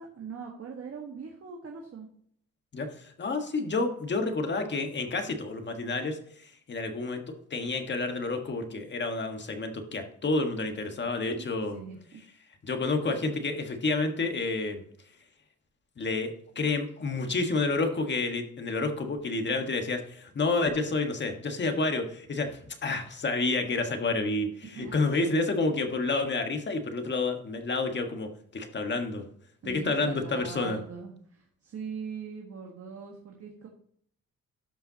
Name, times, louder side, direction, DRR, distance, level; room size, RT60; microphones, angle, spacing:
voice 1, 0.0-2.1 11.3-11.5 11.7-12.2 24.7-25.5 29.6-33.7, right 6 dB, 50° right, 0 dB, 1.6 m, -41 dB
voice 2, 2.7-11.8 12.6-14.8 16.0-29.2 29.6-30.8, left 3 dB, 35° left, 5 dB, 1.6 m, -29 dB
13.0 x 5.6 x 2.9 m, 0.63 s
cardioid pair, 90°, 30 cm